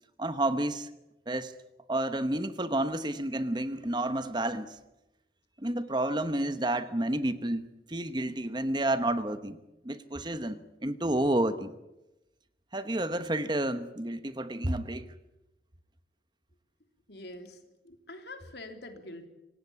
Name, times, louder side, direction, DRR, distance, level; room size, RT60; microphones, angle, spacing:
voice 1, 0.2-0.9 1.3-1.5 1.9-4.8 5.6-9.6 9.8-11.7 12.7-15.1, right 1 dB, 25° right, 11 dB, 1.0 m, -30 dB
voice 2, 17.1-19.3, left 1 dB, 65° left, 6 dB, 3.3 m, -45 dB
26.0 x 18.0 x 8.7 m, 0.97 s
head